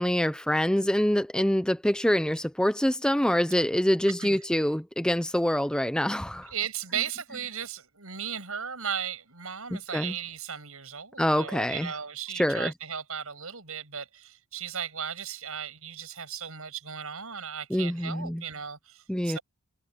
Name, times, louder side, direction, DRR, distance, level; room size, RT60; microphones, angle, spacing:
voice 1, 0.0-6.5 9.9-10.1 11.2-11.9 12.3-12.7 17.7-18.4 19.1-19.4, equal, 5° left, 0.7 m, -25 dB
voice 2, 6.5-19.4, right 8 dB, 75° right, 7.7 m, -36 dB
head